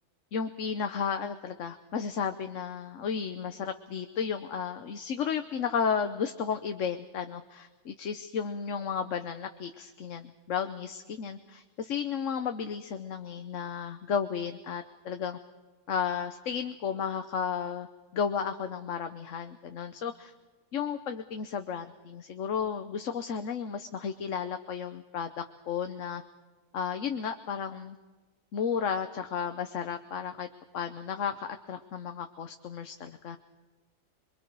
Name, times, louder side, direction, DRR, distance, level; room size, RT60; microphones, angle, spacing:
voice 1, 0.3-15.4 15.9-17.9 18.1-20.3 20.7-26.2 26.7-28.0 28.5-30.5 30.7-33.4, left 7 dB, 85° left, 7 dB, 1.3 m, -33 dB
27.5 x 22.5 x 4.7 m, 1.2 s
omnidirectional pair, 1.3 m